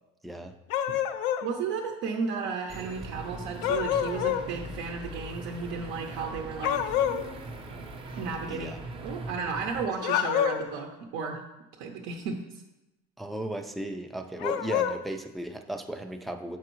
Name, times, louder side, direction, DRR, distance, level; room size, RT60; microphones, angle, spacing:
voice 1, 0.2-0.5 8.5-8.8 13.2-16.6, right 1 dB, ahead, 5 dB, 0.3 m, -35 dB
sound 1, 0.7-1.5 3.6-4.5 6.6-7.3 10.0-10.8 14.4-15.0, left 10 dB, 75° left, 0.4 m, -27 dB
voice 2, 1.4-7.0 8.2-8.8 9.0-11.4 11.8-12.6, right 5 dB, 75° right, 1 dB, 0.7 m, -34 dB
sound 2, 2.7-9.9, right 2 dB, 25° right, 0.7 m, -40 dB
6.9 x 4.7 x 3.0 m, 0.96 s
cardioid pair, 125°, 20 cm